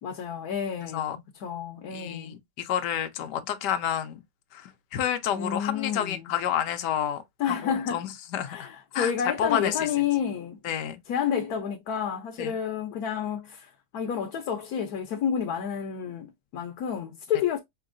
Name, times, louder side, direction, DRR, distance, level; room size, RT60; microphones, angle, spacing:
voice 1, 0.0-2.4 5.3-6.3 7.4-8.0 8.5-10.6 11.1-17.6, left 8 dB, 65° left, 1.2 m, -30 dB
voice 2, 1.9-4.2 4.5-7.2 7.5-8.7 8.9-9.1 9.4-9.7 10.6-11.0 12.4-12.5, left 9 dB, 85° left, 1.3 m, -29 dB
5.2 x 2.8 x 2.5 m
omnidirectional pair, 1.8 m